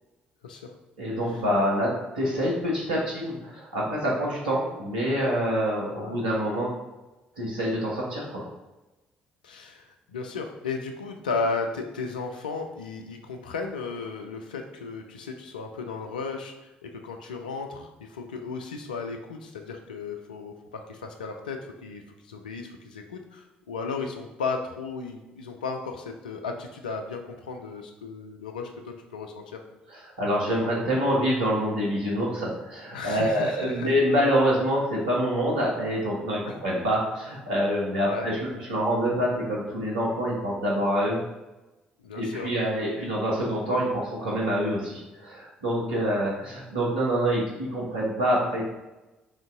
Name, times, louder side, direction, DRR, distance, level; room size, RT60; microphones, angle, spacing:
voice 1, 1.0-6.7 7.4-8.5 29.9-41.2 42.1-48.6, equal, 80° right, -4 dB, 0.9 m, -26 dB
voice 2, 9.4-29.6 32.9-33.9 36.5-36.6 38.0-38.3 42.0-42.6, left 4 dB, 80° left, 4 dB, 0.4 m, -35 dB
3.6 x 2.7 x 3.6 m, 1.1 s
figure-of-eight pair, 45°, 4 cm